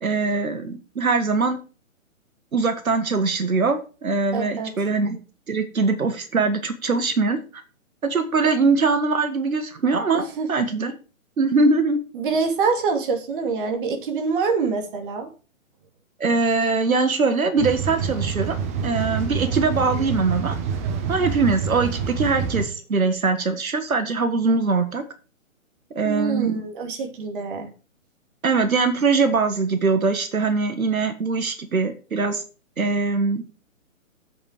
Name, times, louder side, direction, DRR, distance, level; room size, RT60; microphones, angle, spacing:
voice 1, 0.0-1.6 2.5-5.2 5.5-7.6 8.0-10.2 10.5-10.9 11.4-12.0 16.2-18.6 18.8-20.6 21.1-25.0 25.9-26.6 28.4-32.4 32.8-33.4, right 4 dB, 80° right, 8 dB, 1.7 m, -22 dB
voice 2, 4.3-4.7 8.4-8.5 10.1-10.5 12.1-15.3 26.0-27.7, right 5 dB, 40° right, 4 dB, 2.5 m, -25 dB
sound 1, 17.6-22.7, right 6 dB, 10° right, 0.6 m, -27 dB
8.2 x 7.7 x 4.9 m, 0.35 s
hypercardioid pair, 140°, 42 cm